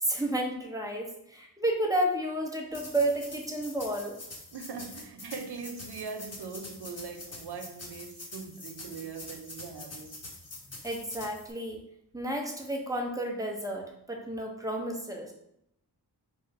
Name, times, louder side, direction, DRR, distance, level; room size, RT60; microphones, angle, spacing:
voice 1, 0.0-4.2 10.8-11.8 12.1-15.3, right 1 dB, 10° right, 0.7 m, -31 dB
sound 1, 2.7-11.5, left 2 dB, 40° left, 0.9 m, -45 dB
voice 2, 4.5-10.2, right 5 dB, 70° right, 0.5 m, -41 dB
3.8 x 3.0 x 4.5 m
wide cardioid pair, 150°, 41 cm